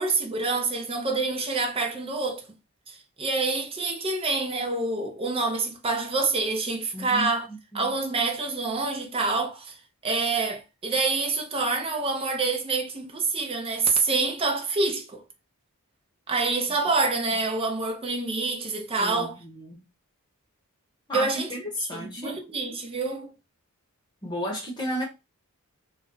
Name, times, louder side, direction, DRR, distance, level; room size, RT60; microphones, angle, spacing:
voice 1, 0.0-2.5 2.9-7.5 7.7-9.7 10.0-15.2 16.3-19.4 21.1-21.5 21.8-23.3, right 3 dB, 25° right, 0.6 m, -27 dB
voice 2, 6.9-7.9 19.0-19.9 21.1-22.4 24.2-25.0, equal, 20° left, 0.9 m, -33 dB
2.5 x 2.1 x 3.8 m
head